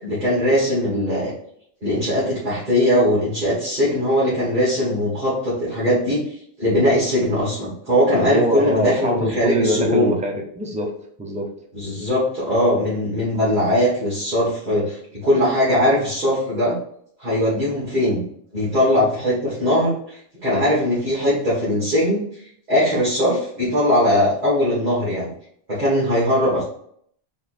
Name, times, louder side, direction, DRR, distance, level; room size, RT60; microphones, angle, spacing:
voice 1, 0.0-1.3 1.8-6.2 6.6-10.1 11.7-16.8 17.2-18.2 18.5-22.2 22.7-25.3 25.7-26.6, left 1 dB, 45° right, -8 dB, 1.5 m, -20 dB
voice 2, 8.3-10.9 11.2-11.5, equal, 10° right, 1 dB, 0.4 m, -23 dB
3.4 x 2.6 x 4.1 m, 0.65 s
omnidirectional pair, 1.1 m